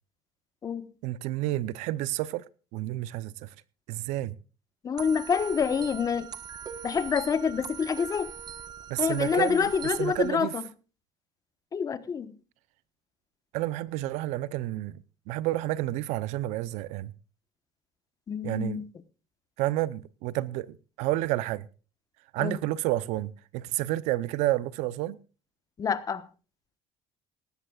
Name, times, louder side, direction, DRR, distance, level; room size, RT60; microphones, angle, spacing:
voice 1, 1.0-2.4 2.7-3.5 3.9-4.3 8.9-9.7 10.0-10.5 13.5-17.1 18.4-18.8 19.6-21.7 22.3-25.2, right 16 dB, 75° right, 0.7 m, -30 dB
voice 2, 4.8-6.3 6.8-8.3 9.0-10.6 11.7-12.3 18.3-18.9 22.4-22.6 25.8-26.3, left 6 dB, 30° left, 1.2 m, -27 dB
sound 1, 5.0-10.3, right 8 dB, 35° right, 1.3 m, -41 dB
18.0 x 15.5 x 2.4 m
cardioid pair, 120°, 12 cm